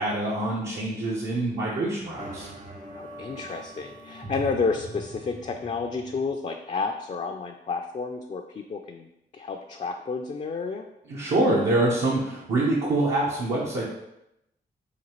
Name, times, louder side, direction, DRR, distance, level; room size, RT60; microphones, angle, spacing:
voice 1, 0.0-2.5 11.1-13.9, right 2 dB, 65° right, -6 dB, 0.8 m, -25 dB
sound 1, 2.2-6.3, right 2 dB, 40° right, 0.8 m, -41 dB
voice 2, 2.9-10.9, left 4 dB, 35° left, 3 dB, 0.4 m, -31 dB
5.0 x 2.4 x 3.0 m, 0.85 s
supercardioid pair, 45°, 20 cm